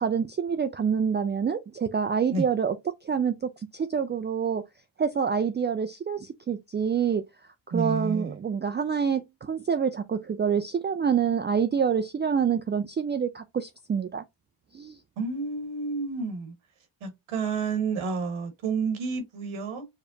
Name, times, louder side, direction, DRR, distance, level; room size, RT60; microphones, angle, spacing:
voice 1, 0.0-2.8 3.0-4.6 5.0-7.2 7.7-14.2 14.7-15.0, right 7 dB, 25° right, 0.3 m, -27 dB
voice 2, 7.7-8.3 15.2-16.5 17.0-19.9, right 4 dB, 75° right, 1.4 m, -30 dB
5.0 x 2.0 x 2.6 m
cardioid pair, 70°, 49 cm